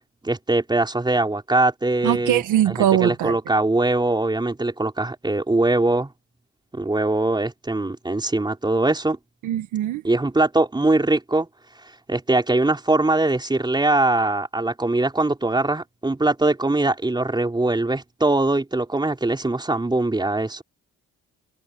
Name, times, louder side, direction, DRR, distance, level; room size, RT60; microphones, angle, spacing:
voice 1, 0.2-6.1 6.7-9.2 10.0-11.5 12.1-20.6, right 2 dB, 15° right, 4.5 m, -22 dB
voice 2, 2.0-3.3 9.4-10.0, right 12 dB, 90° right, 1.6 m, -21 dB
cardioid pair, 90°, 30 cm